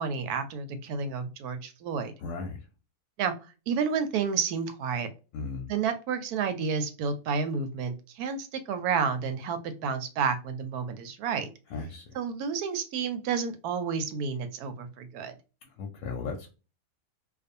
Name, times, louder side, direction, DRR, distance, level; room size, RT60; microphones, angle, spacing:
voice 1, 0.0-2.1 3.2-3.3 3.7-5.1 5.7-11.5 12.1-15.3, right 6 dB, 85° right, 9 dB, 1.1 m, -30 dB
voice 2, 2.2-2.7 5.3-5.7 11.7-12.2 15.6-16.5, left 4 dB, 70° left, 2 dB, 0.9 m, -36 dB
2.5 x 2.3 x 2.6 m, 0.32 s
omnidirectional pair, 1.6 m